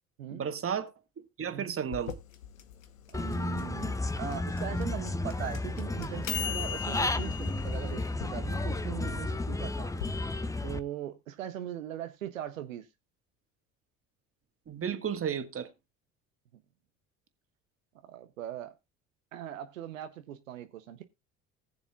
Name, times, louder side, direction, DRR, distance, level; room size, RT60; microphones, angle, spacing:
voice 1, 0.3-2.2 14.7-15.7, right 8 dB, 35° right, 1.5 m, -34 dB
sound 1, 1.9-10.1, left 9 dB, 85° left, 0.9 m, -40 dB
Human voice / Bird, 3.1-10.8, left 2 dB, 10° left, 0.6 m, -33 dB
voice 2, 3.1-9.9 10.6-12.9 18.0-18.8 19.3-21.0, right 10 dB, 85° right, 0.7 m, -40 dB
19.5 x 7.0 x 2.3 m
hypercardioid pair, 55°, 39 cm